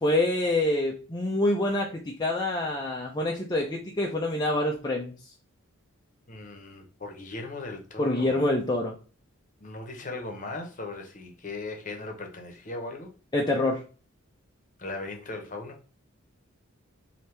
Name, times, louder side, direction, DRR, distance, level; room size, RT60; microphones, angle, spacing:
voice 1, 0.0-5.1 8.0-8.9 13.3-13.8, left 1 dB, 20° left, 0.5 m, -26 dB
voice 2, 6.3-8.5 9.6-13.1 14.8-15.8, left 2 dB, 40° left, 0.9 m, -38 dB
4.5 x 2.8 x 3.3 m
head